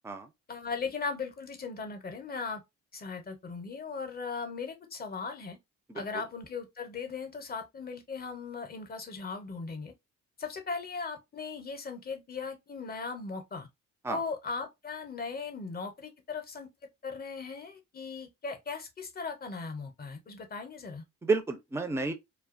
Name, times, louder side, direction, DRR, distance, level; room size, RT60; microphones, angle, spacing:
voice 1, 0.5-2.6 2.9-5.6 5.9-9.9 10.4-13.7 14.1-16.7 17.0-21.0, left 4 dB, 30° left, 0.7 m, -38 dB
voice 2, 5.9-6.2 14.0-14.2 21.2-22.1, right 3 dB, 10° right, 0.4 m, -31 dB
2.3 x 2.2 x 2.4 m
cardioid pair, 90°, 30 cm